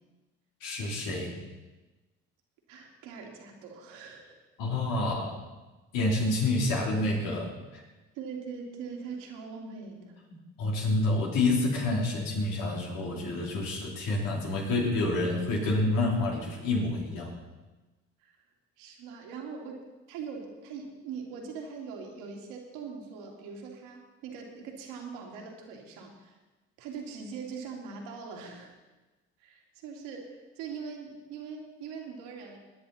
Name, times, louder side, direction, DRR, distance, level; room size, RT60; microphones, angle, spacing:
voice 1, 0.6-1.3 4.6-5.4 5.9-7.5 10.6-17.3, left 2 dB, 80° left, -2 dB, 3.8 m, -28 dB
voice 2, 2.7-4.4 8.1-10.2 18.2-18.4 18.8-19.8 20.1-26.3 26.8-28.7 29.4-32.6, right 5 dB, 85° right, 1 dB, 2.7 m, -42 dB
21.0 x 10.5 x 4.2 m, 1.2 s
supercardioid pair, 70°, 32 cm